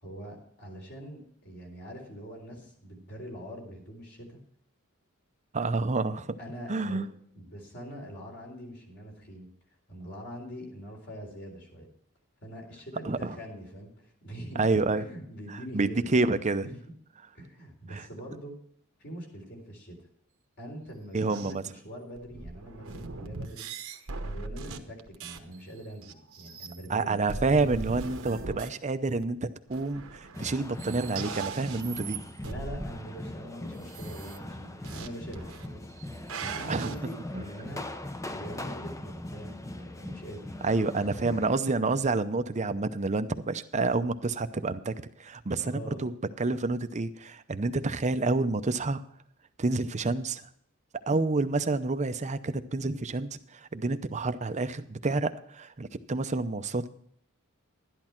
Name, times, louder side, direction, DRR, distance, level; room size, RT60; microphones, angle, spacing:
voice 1, 0.0-4.4 6.4-7.1 7.4-9.5 9.9-11.9 12.4-14.6 14.9-16.1 16.6-16.8 17.3-18.6 19.0-19.9 20.6-23.6 24.2-27.2 32.4-35.8 36.4-37.8 38.3-40.6 45.6-46.1, equal, 50° left, 1 dB, 3.9 m, -43 dB
voice 2, 5.5-6.4 6.7-7.1 13.0-13.3 14.6-15.0 15.7-16.7 17.9-18.0 21.1-21.6 26.9-32.2 36.7-36.9 37.3-37.4 40.6-44.9 45.2-46.1 46.4-49.0 49.6-50.4 51.1-56.9, right 3 dB, 35° right, 11 dB, 0.6 m, -28 dB
sound 1, 21.2-21.5 22.2-25.5 26.0-27.0 27.3-28.7 29.2-29.3 29.7-30.5 30.8-32.9 33.9-34.4 34.8-35.1 35.3-35.7 36.0-36.9, right 4 dB, 70° right, 1.1 m, -39 dB
sound 2, 30.3-41.6, left 1 dB, 15° left, 0.6 m, -41 dB
12.0 x 11.0 x 4.5 m, 0.65 s
head